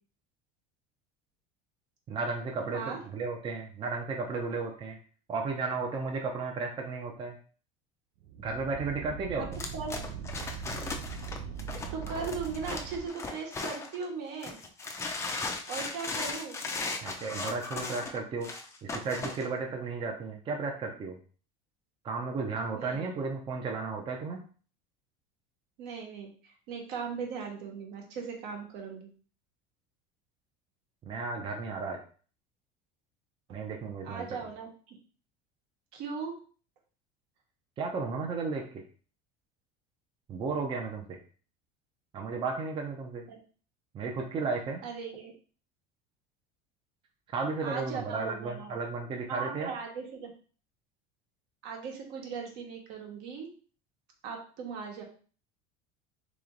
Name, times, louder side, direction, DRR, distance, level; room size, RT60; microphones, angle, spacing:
voice 1, 2.1-5.0 5.3-7.4 8.4-9.6 17.0-18.5 18.8-21.2 22.0-24.4 31.0-32.0 33.5-34.2 37.8-38.6 40.3-41.2 42.1-43.2 43.9-44.8 47.3-49.7, right 4 dB, 30° right, 1 dB, 0.6 m, -34 dB
sound 1, 8.2-13.1, right 6 dB, 85° right, 0.4 m, -40 dB
sound 2, 9.5-14.0 14.4-19.5, left 3 dB, 15° left, 0.5 m, -37 dB
voice 2, 11.9-14.6 15.7-16.6 19.8-19.9 22.7-23.1 25.8-29.1 34.0-35.0 35.9-36.3 43.3-43.4 44.8-45.3 47.6-48.8 49.3-50.3 51.6-53.5 54.2-55.0, right 5 dB, 65° right, 1 dB, 1.2 m, -38 dB
3.0 x 3.0 x 3.8 m, 0.41 s
cardioid pair, 145°, 18 cm